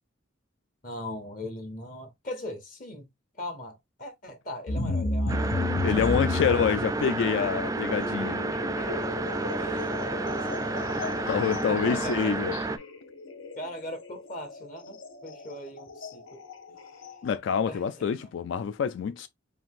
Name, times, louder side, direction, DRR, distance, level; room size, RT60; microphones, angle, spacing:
voice 1, 0.8-3.1 3.3-5.7 9.6-11.3 11.7-12.3 13.5-16.4 16.7-17.1 17.7-18.3, left 1 dB, 45° left, 0.8 m, -40 dB
sound 1, 4.7-17.3, left 2 dB, 85° left, 0.9 m, -34 dB
sound 2, 5.3-12.8, right 2 dB, 15° right, 0.3 m, -31 dB
voice 2, 5.8-8.4 11.3-12.5 17.2-19.3, left 7 dB, 70° left, 0.3 m, -27 dB
5.1 x 2.4 x 3.6 m
head